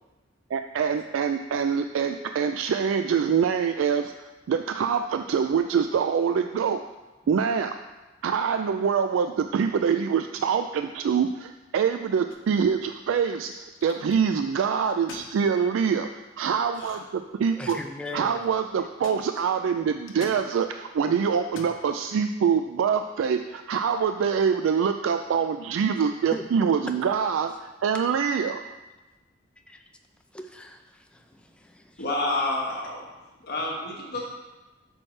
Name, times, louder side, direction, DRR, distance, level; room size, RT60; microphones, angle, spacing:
voice 1, 0.5-4.1 4.5-6.8 7.3-7.7 8.2-16.1 16.4-17.8 18.1-28.6, right 6 dB, 80° right, 7 dB, 0.3 m, -25 dB
sound 1, 12.3-12.7 13.5-14.2 14.9-15.3 16.7-17.2 17.4-18.1 19.0-19.2 20.1-20.4 21.4-21.8, left 3 dB, 85° left, 0.9 m, -43 dB
voice 2, 17.5-18.4 26.3-26.4 26.9-27.0 29.7-29.8 30.3-32.0, left 1 dB, 5° left, 4 dB, 0.5 m, -39 dB
voice 3, 32.0-33.0 33.4-34.3, left 2 dB, 55° left, -2 dB, 1.5 m, -28 dB
8.6 x 6.3 x 3.2 m, 1.2 s
head